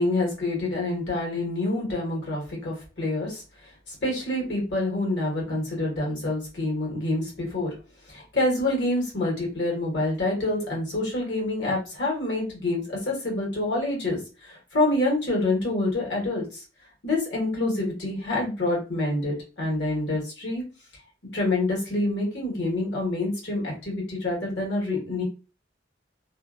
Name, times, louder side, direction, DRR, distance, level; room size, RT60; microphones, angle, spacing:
voice 1, 0.0-3.4 3.9-7.7 8.1-16.6 17.0-20.6 21.3-25.2, left 2 dB, 70° left, -2 dB, 1.4 m, -27 dB
2.6 x 2.4 x 2.4 m, 0.33 s
head